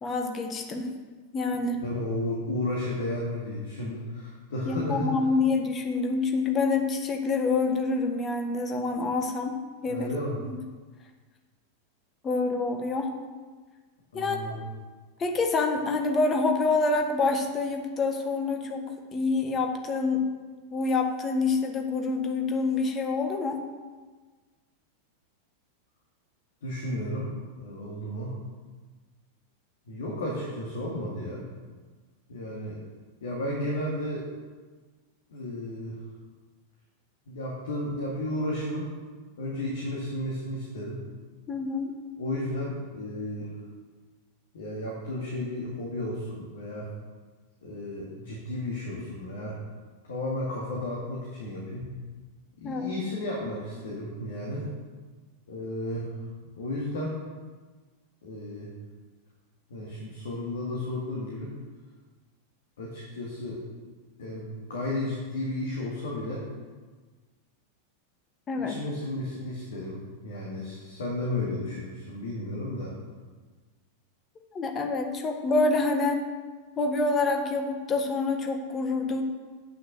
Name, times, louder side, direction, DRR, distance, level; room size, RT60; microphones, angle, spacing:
voice 1, 0.0-0.9 1.3-1.8 4.7-10.1 10.4-10.5 12.2-13.1 14.1-14.6 15.2-20.3 20.7-23.6 41.5-41.9 52.6-52.9 68.5-68.8 74.5-76.2 76.8-79.2, left 3 dB, 25° left, 4 dB, 1.4 m, -27 dB
voice 2, 1.8-5.1 9.9-10.4 14.1-14.6 26.6-27.3 27.6-28.4 29.9-31.5 32.3-32.8 33.2-34.2 35.3-36.0 37.3-38.9 39.4-41.0 42.2-43.5 44.5-46.9 47.6-49.5 50.1-51.9 52.6-54.7 55.5-56.1 56.5-57.2 58.2-58.7 59.7-61.5 62.8-63.6 64.2-66.4 68.6-72.9, left 1 dB, 60° left, -4 dB, 2.2 m, -33 dB
8.7 x 6.4 x 6.7 m, 1.4 s
figure-of-eight pair, 90°, 0 cm